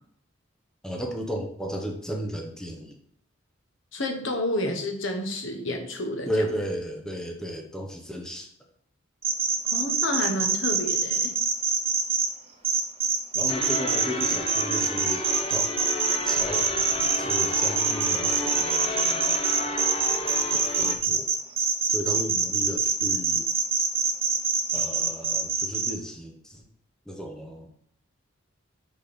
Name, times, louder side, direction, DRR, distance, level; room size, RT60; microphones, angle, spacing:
voice 1, 0.8-3.0 6.2-8.5 13.3-15.8 16.2-16.7 17.2-19.1 20.5-21.3 21.9-23.5 24.7-26.6 27.1-27.7, equal, 5° left, 1 dB, 0.8 m, -34 dB
voice 2, 3.9-6.3 9.7-11.3, left 1 dB, 70° left, 4 dB, 1.3 m, -30 dB
sound 1, 9.2-12.3 12.6-25.9, right 5 dB, 30° right, 1.0 m, -24 dB
sound 2, 13.5-20.9, left 1 dB, 30° left, 0.9 m, -32 dB
6.6 x 4.0 x 5.1 m, 0.68 s
head